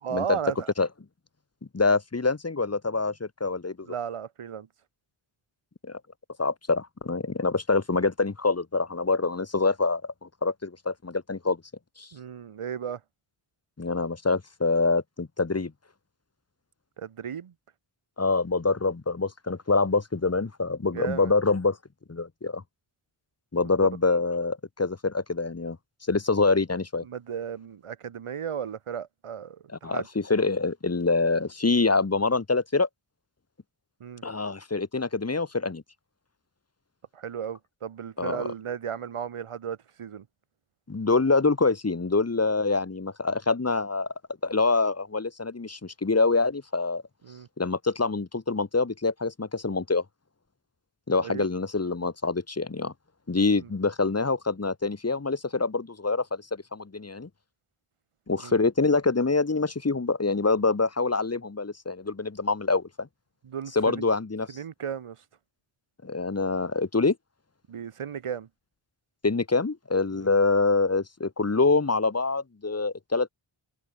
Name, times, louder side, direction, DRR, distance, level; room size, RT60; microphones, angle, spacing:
voice 1, 0.0-0.7 3.9-4.7 12.1-13.0 17.0-17.5 20.9-21.3 23.8-23.9 27.0-30.1 34.0-34.2 37.1-40.2 47.2-47.5 51.2-51.5 53.6-53.7 58.4-58.5 63.4-64.0 64.5-65.2 67.7-68.5 70.1-70.3, right 8 dB, 90° right, 2.7 m, -35 dB
voice 2, 1.7-3.9 5.8-6.0 6.4-11.6 12.0-12.1 13.8-15.7 18.2-21.8 22.1-22.6 23.5-25.8 26.1-27.0 29.8-32.9 34.2-35.8 38.2-38.5 40.9-44.1 44.4-47.0 47.6-50.0 51.1-52.9 53.3-57.3 58.3-63.1 63.7-64.6 66.0-67.2 69.2-73.3, left 3 dB, 30° left, 3.1 m, -25 dB
wide cardioid pair, 140°, 50 cm